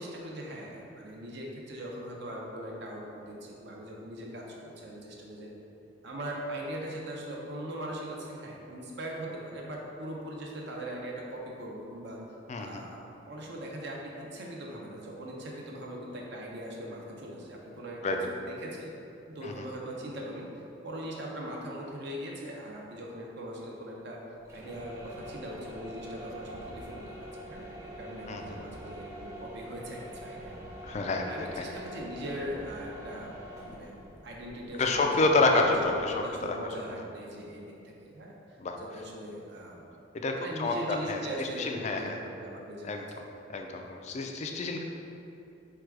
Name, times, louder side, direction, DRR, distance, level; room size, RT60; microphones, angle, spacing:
voice 1, 0.0-5.5 6.0-12.2 12.6-18.9 19.3-24.2 24.5-27.0 27.5-30.5 31.2-33.3 33.6-35.8 36.1-38.6 38.9-39.8 40.3-43.0, right 1 dB, 60° right, -2 dB, 0.6 m, -40 dB
voice 2, 12.5-12.8 18.0-18.2 19.4-19.5 28.3-28.4 30.8-31.6 34.8-36.5 38.6-38.8 40.1-40.3 40.6-42.2 42.8-43.0 43.5-44.8, left 3 dB, 35° left, 3 dB, 0.3 m, -28 dB
sound 1, 24.4-36.3, equal, 15° right, 0.6 m, -45 dB
4.6 x 2.3 x 4.6 m, 2.8 s
head